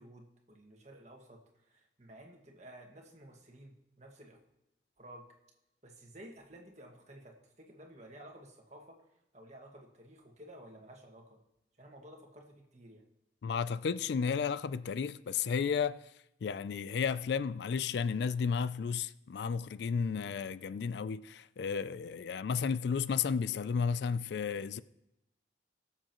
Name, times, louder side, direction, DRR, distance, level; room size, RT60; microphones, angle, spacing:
voice 1, 0.0-4.4 5.0-5.2 5.8-9.0 9.3-11.4 11.8-13.0, right 1 dB, 35° right, 1.8 m, -53 dB
voice 2, 13.4-16.0 16.4-24.8, left 6 dB, 65° left, 0.3 m, -33 dB
19.0 x 7.4 x 3.0 m
head